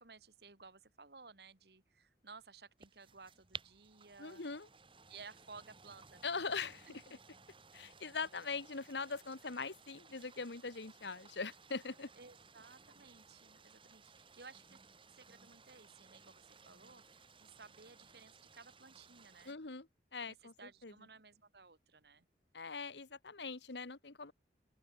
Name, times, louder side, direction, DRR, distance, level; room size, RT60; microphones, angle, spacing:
voice 1, 0.0-4.4 5.1-6.4 6.9-7.2 12.2-14.8 15.2-19.6 20.2-22.3, right 4 dB, 65° right, 1.8 m, -57 dB
sound 1, 2.8-19.5, right 5 dB, 30° right, 4.9 m, -58 dB
voice 2, 4.2-4.7 6.2-7.0 7.7-12.1 19.4-20.5 20.8-20.9 22.5-24.3, left 4 dB, 80° left, 1.4 m, -42 dB
open air
head